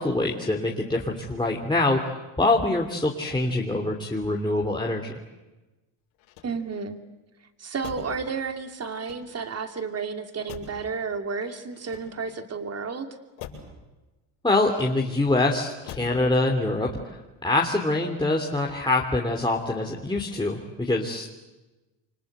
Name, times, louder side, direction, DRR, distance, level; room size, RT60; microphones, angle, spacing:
voice 1, 0.0-2.1 2.4-5.2 14.4-17.2 17.4-21.3, left 2 dB, 10° left, -1 dB, 3.2 m, -25 dB
Motor vehicle (road), 6.1-7.0 7.8-8.3 8.9-9.6 10.5-10.9 11.7-12.5 13.4-13.8 14.7-15.3 15.9-16.3 16.6-17.1, left 7 dB, 90° left, 7.2 m, -44 dB
voice 2, 6.4-7.0 7.6-13.1, right 5 dB, 30° right, 6 dB, 3.0 m, -32 dB
29.5 x 25.0 x 8.1 m, 1.1 s
cardioid pair, 100°, 47 cm